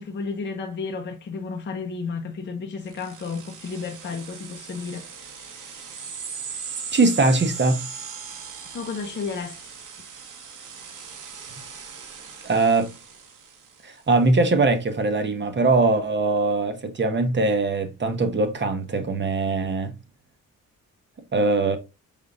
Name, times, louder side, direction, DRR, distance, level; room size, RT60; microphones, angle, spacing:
voice 1, 0.0-5.1 8.7-9.7, left 4 dB, 35° left, 0.7 m, -32 dB
sound 1, 2.9-14.0, right 6 dB, 65° right, 1.1 m, -39 dB
voice 2, 6.9-7.8 12.4-12.9 13.8-19.9 21.3-21.8, right 3 dB, 35° right, 0.9 m, -21 dB
5.2 x 3.6 x 2.4 m
cardioid pair, 115°, 34 cm